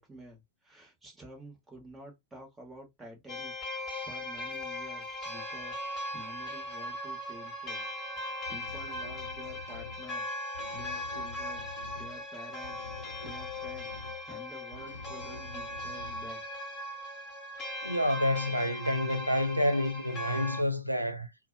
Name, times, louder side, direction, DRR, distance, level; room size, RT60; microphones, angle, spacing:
voice 1, 0.0-3.6 3.9-11.7 11.9-12.9 13.1-13.9 14.3-16.4, right 1 dB, 10° right, 1.1 m, -50 dB
sound 1, 3.3-20.6, left 1 dB, 25° left, 1.1 m, -39 dB
sound 2, 8.5-10.2 10.5-12.3 12.6-14.3 14.7-16.4, left 3 dB, 80° left, 0.4 m, -47 dB
voice 2, 17.8-21.3, left 1 dB, 90° right, 0.4 m, -28 dB
2.5 x 2.0 x 2.5 m
figure-of-eight pair, 90°, 0 cm